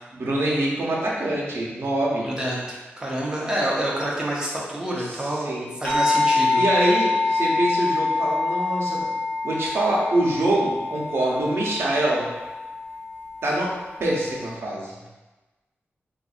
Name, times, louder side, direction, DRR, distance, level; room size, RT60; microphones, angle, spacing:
voice 1, 0.1-2.3 5.0-5.6 6.5-9.1 9.4-12.2 13.4-13.7 14.0-15.0, right 1 dB, 70° right, -4 dB, 0.8 m, -24 dB
voice 2, 2.2-5.5 5.8-6.6, right 1 dB, 15° right, -5 dB, 0.8 m, -27 dB
sound 1, 5.8-14.5, left 3 dB, 45° left, 1.3 m, -26 dB
3.9 x 2.6 x 2.5 m, 1.2 s
wide cardioid pair, 125°, 4 cm